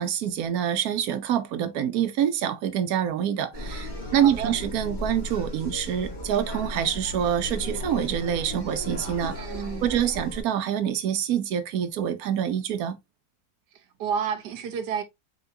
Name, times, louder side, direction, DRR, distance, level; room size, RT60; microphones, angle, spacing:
voice 1, 0.0-9.5 9.8-13.0, right 9 dB, 70° right, 1.1 m, -26 dB
sound 1, 3.5-10.4, left 1 dB, 30° left, 1.7 m, -35 dB
voice 2, 4.2-4.5 9.3-9.9 13.7-15.0, right 7 dB, 90° right, 1.4 m, -30 dB
4.3 x 4.0 x 2.6 m
omnidirectional pair, 1.7 m